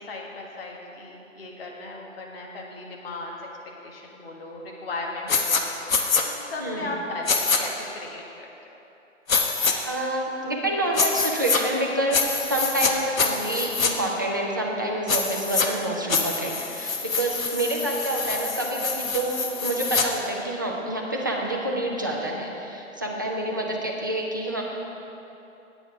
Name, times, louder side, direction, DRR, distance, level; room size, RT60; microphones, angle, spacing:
voice 1, 0.0-3.5 3.8-8.8 23.4-23.5, left 2 dB, 45° left, -1 dB, 1.7 m, -37 dB
sound 1, 5.3-5.6 5.9-6.2 7.3-7.6 9.3-9.7 10.9-11.6 12.1-12.9 13.2-13.9 15.1-15.7 16.1-20.1, left 5 dB, 85° left, 1.1 m, -25 dB
voice 2, 6.6-6.9 9.8-24.6, right 1 dB, 15° right, -2 dB, 0.4 m, -28 dB
8.9 x 8.9 x 4.6 m, 3.0 s
hypercardioid pair, 145°, 39 cm